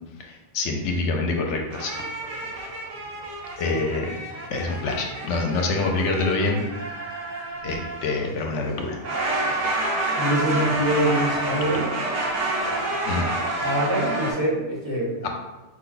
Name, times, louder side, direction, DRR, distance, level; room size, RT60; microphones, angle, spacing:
voice 1, 0.2-1.9 3.6-4.2 4.5-6.6 7.6-9.0 13.0-13.3 15.2-15.3, left 3 dB, 80° left, 2 dB, 0.9 m, -26 dB
sound 1, 1.7-14.3, right 2 dB, 80° right, 1.2 m, -29 dB
voice 2, 10.1-11.8 13.6-15.3, right 1 dB, 20° right, -7 dB, 1.3 m, -24 dB
4.7 x 2.2 x 3.9 m, 1.1 s
omnidirectional pair, 1.2 m